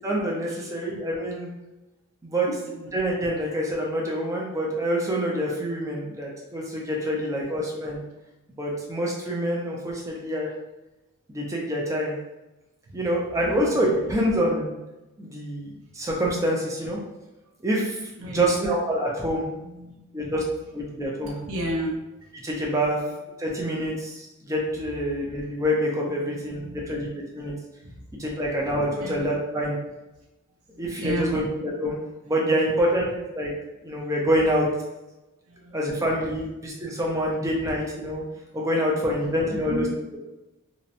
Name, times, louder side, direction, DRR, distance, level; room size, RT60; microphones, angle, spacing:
voice 1, 0.0-1.5 2.2-2.5 2.9-8.0 8.6-10.5 11.3-12.2 12.9-14.7 15.2-17.0 17.6-19.5 20.1-20.4 20.7-21.4 22.4-23.0 23.4-26.6 26.9-27.6 28.2-29.7 30.8-32.0 32.2-33.5 33.8-34.7 35.7-38.2 38.5-39.8, equal, 15° right, -2 dB, 0.4 m, -26 dB
voice 2, 6.8-7.6 12.9-14.2 18.2-18.7 19.6-20.7 21.2-22.0 26.0-27.5 27.8-28.1 28.5-28.6 28.9-29.2 30.7-31.5 32.3-33.1 34.0-34.1 35.5-36.2 38.8-40.0, equal, 65° right, -3 dB, 0.6 m, -36 dB
2.8 x 2.0 x 2.5 m, 1.0 s
head